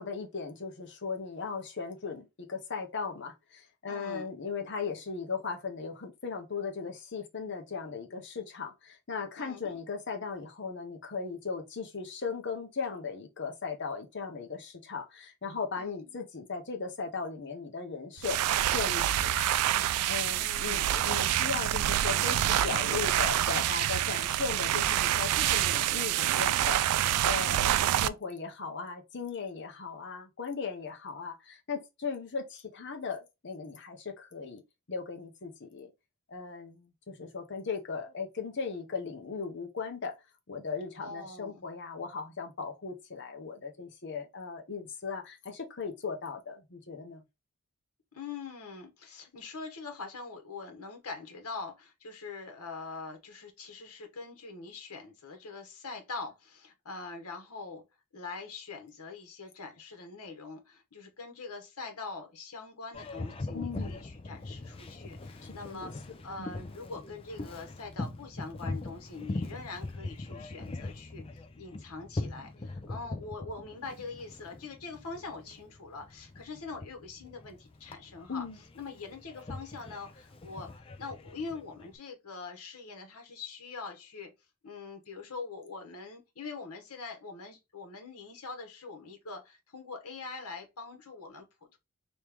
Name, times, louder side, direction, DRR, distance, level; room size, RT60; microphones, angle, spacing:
voice 1, 0.0-19.6 20.1-26.8 27.2-27.7 28.0-34.6 34.9-35.9 36.3-40.2 40.5-47.2 63.5-64.0 65.4-65.9 66.4-66.5 78.3-78.6, left 5 dB, 50° left, 0.8 m, -37 dB
voice 2, 3.9-4.3 9.4-9.8 15.8-16.2 20.2-20.9 41.0-41.7 48.1-57.8 58.1-78.4 78.7-84.3 84.6-91.8, left 4 dB, 90° left, 1.1 m, -43 dB
sound 1, 18.2-28.1, right 12 dB, 85° right, 0.3 m, -27 dB
Boat Water vehicle, 62.9-81.9, left 2 dB, 25° left, 0.4 m, -41 dB
3.1 x 3.0 x 3.4 m
head